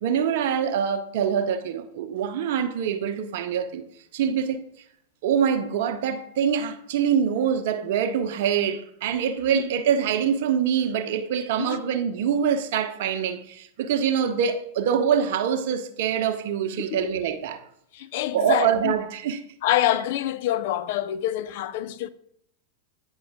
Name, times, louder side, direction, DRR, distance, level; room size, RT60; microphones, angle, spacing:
voice 1, 0.0-3.8 4.1-4.6 5.2-17.6 18.3-19.4, right 8 dB, 60° right, 0.7 m, -24 dB
voice 2, 17.9-18.9 19.6-22.1, left 12 dB, 60° left, 0.4 m, -26 dB
8.9 x 5.3 x 3.5 m
hypercardioid pair, 95°, 0 cm